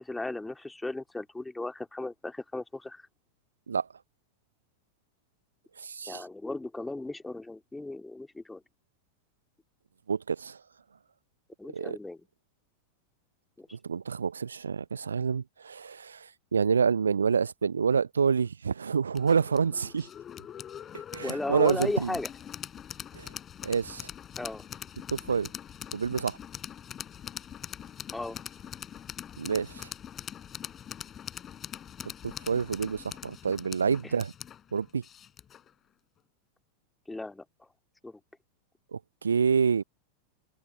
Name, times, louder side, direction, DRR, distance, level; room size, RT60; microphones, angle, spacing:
voice 1, 0.0-3.0 6.1-8.6 11.6-12.2 13.6-13.7 21.2-22.3 24.4-24.7 28.1-28.4 34.0-34.1 37.1-37.4 38.0-38.2, left 2 dB, 5° left, 2.4 m, -35 dB
voice 2, 5.8-6.2 10.1-10.6 11.7-12.0 13.7-20.1 21.1-22.2 23.1-23.3 23.6-24.1 25.1-25.5 25.9-26.4 29.4-29.9 32.2-34.3 34.7-35.0 38.9-39.8, right 6 dB, 70° right, 0.7 m, -28 dB
sound 1, 19.1-35.7, left 9 dB, 25° left, 5.5 m, -43 dB
open air
figure-of-eight pair, 90°, 0 cm